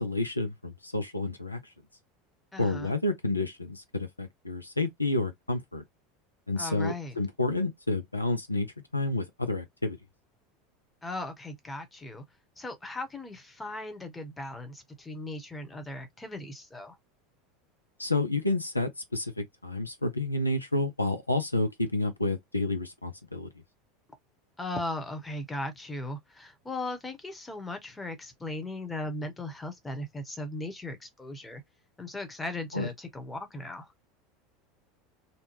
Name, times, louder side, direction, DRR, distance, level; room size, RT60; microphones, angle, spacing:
voice 1, 0.0-1.6 2.6-5.8 6.5-10.0 18.0-23.5 32.7-32.9, left 2 dB, 90° left, 0.4 m, -30 dB
voice 2, 2.5-2.9 6.6-7.2 11.0-12.2 12.6-17.0 24.6-31.6 32.0-33.9, left 2 dB, 15° left, 0.9 m, -38 dB
2.8 x 2.2 x 2.9 m
figure-of-eight pair, 75°, 0 cm